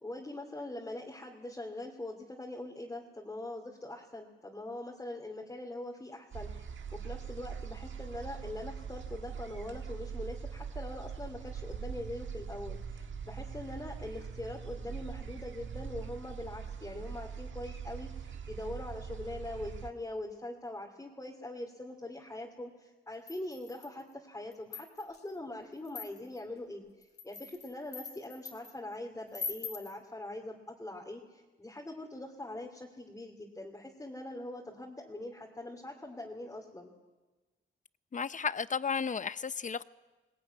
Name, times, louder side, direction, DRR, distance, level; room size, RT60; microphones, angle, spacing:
voice 1, 0.0-36.9, left 1 dB, 15° left, 2.5 m, -43 dB
sound 1, 6.3-19.9, right 6 dB, 65° right, 1.6 m, -42 dB
sound 2, 23.3-24.0 24.5-25.2 25.9-26.4 27.0-28.7 29.3-29.9, left 5 dB, 55° left, 2.5 m, -42 dB
voice 2, 38.1-39.8, left 6 dB, 40° left, 0.7 m, -33 dB
21.0 x 19.5 x 9.5 m
cardioid pair, 100°, 21 cm